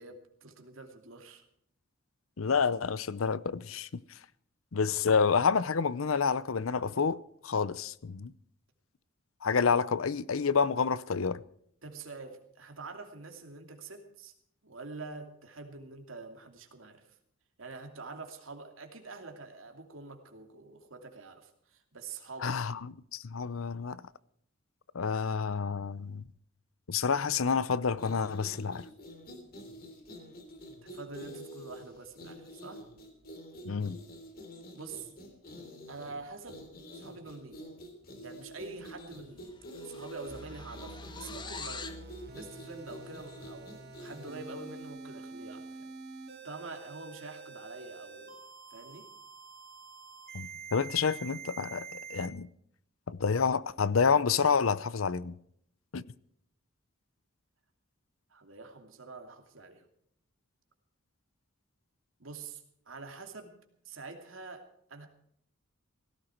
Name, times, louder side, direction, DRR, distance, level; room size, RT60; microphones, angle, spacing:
voice 1, 0.0-1.4 11.8-14.3 14.6-17.1 17.6-22.6 30.8-32.9 34.7-35.1 35.9-36.6 36.9-37.6 38.2-41.9 42.3-45.9 46.4-48.4 48.7-49.1 58.3-59.9 62.2-63.6 63.8-65.1, right 3 dB, 70° right, 2.7 m, -46 dB
voice 2, 2.4-3.9 4.7-8.3 9.4-11.4 22.4-24.0 24.9-26.2 26.9-28.9 33.6-34.0 50.3-52.5 53.1-55.4 55.9-56.0, left 5 dB, 85° left, 0.7 m, -29 dB
sound 1, 27.9-45.0, equal, 45° left, 3.2 m, -48 dB
sound 2, 39.1-39.2 39.3-42.1, left 4 dB, 20° left, 1.2 m, -45 dB
sound 3, 40.3-52.3, right 4 dB, 50° right, 3.7 m, -47 dB
17.5 x 16.0 x 4.5 m
head